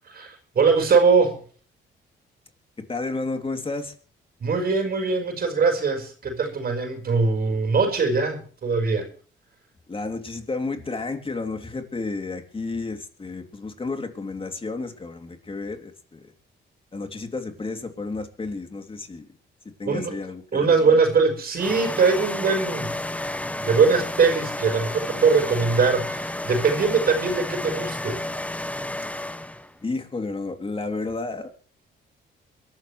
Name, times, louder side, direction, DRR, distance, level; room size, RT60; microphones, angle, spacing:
voice 1, 0.0-1.4 4.4-9.1 19.8-20.1 20.5-22.9 23.6-28.2, right 4 dB, 50° right, 4 dB, 5.1 m, -21 dB
voice 2, 2.9-3.9 9.9-16.3 16.9-19.3 19.6-20.9 29.8-31.5, left 3 dB, 25° left, 5 dB, 3.0 m, -32 dB
sound 1, 21.6-29.7, left 1 dB, 5° left, 0.9 m, -31 dB
23.5 x 13.0 x 3.3 m, 0.42 s
cardioid pair, 90°, 20 cm